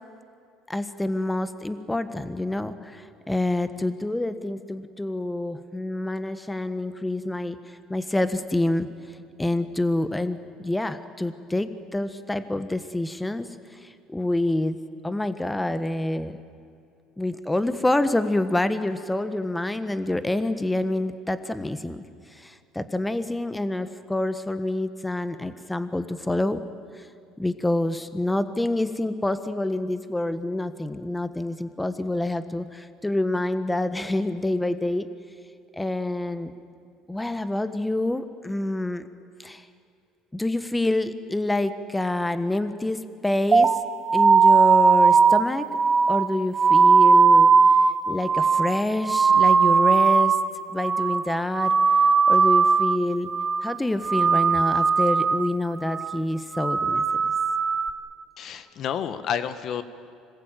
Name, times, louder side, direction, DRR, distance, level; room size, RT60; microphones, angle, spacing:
voice 1, 0.7-8.9 9.4-13.6 13.8-14.8 15.0-16.4 17.2-22.0 22.3-26.6 27.0-27.1 27.4-35.1 35.8-36.5 37.1-39.1 39.4-39.6 40.3-43.7 44.1-45.7 46.1-47.5 48.1-50.4 50.7-51.7 52.3-53.3 53.6-57.3, left 1 dB, 10° left, 12 dB, 1.4 m, -27 dB
sound 1, 43.5-50.5 50.8-51.3 51.5-53.0 53.3-53.7 54.0-55.5 55.8-56.2 56.5-57.9, right 5 dB, 30° right, 1.1 m, -19 dB
voice 2, 58.4-59.8, left 8 dB, 55° left, 12 dB, 1.4 m, -30 dB
26.0 x 20.5 x 9.1 m, 2.4 s
supercardioid pair, 90°, 0 cm